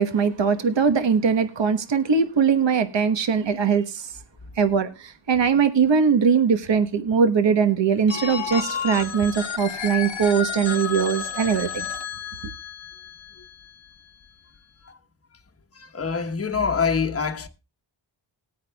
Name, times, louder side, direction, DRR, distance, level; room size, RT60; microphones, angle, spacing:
voice 1, 0.0-4.1 4.6-11.8, right 6 dB, 65° right, 1.2 m, -21 dB
Telephone, 8.1-13.9, left 7 dB, 70° left, 1.4 m, -32 dB
voice 2, 15.7-17.5, left 5 dB, 30° left, 1.1 m, -25 dB
19.0 x 9.3 x 2.3 m
cardioid pair, 65°, 47 cm